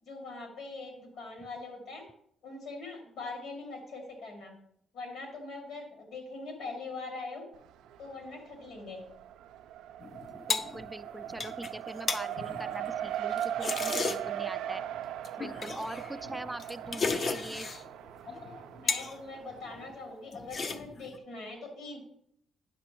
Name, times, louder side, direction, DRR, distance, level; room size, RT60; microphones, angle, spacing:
voice 1, 0.0-2.0 2.4-4.5 4.9-7.5 8.0-9.0 18.3-22.0, left 3 dB, 75° left, 1 dB, 2.4 m, -42 dB
Race car auto racing, 7.5-8.3 8.6-19.9, right 11 dB, 90° right, 0.3 m, -39 dB
sound 1, 10.0-14.5 15.2-17.9 18.3-19.2 19.5-20.0 20.3-21.2, left 4 dB, 45° left, 0.5 m, -35 dB
voice 2, 10.5-14.8 15.4-17.7, right 1 dB, 5° right, 13 dB, 0.3 m, -42 dB
9.3 x 5.9 x 3.0 m, 0.70 s
cardioid pair, 90°, 0 cm